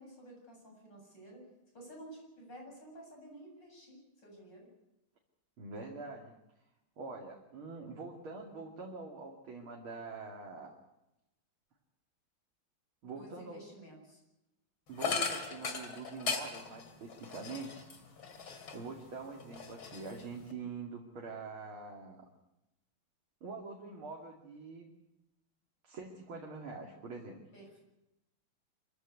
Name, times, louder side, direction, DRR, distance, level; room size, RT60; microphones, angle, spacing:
voice 1, 0.0-1.4 1.7-4.7 13.1-14.2 27.5-27.8, right 1 dB, 60° left, 0 dB, 8.7 m, -52 dB
voice 2, 5.6-6.3 7.0-10.7 13.0-13.6 14.9-17.8 18.7-22.2 23.4-24.9 25.8-27.4, right 4 dB, 90° right, 0 dB, 3.4 m, -45 dB
sound 1, 15.0-19.0 19.4-20.5, left 5 dB, 75° left, 3.5 m, -38 dB
26.5 x 15.0 x 8.3 m, 0.92 s
omnidirectional pair, 2.2 m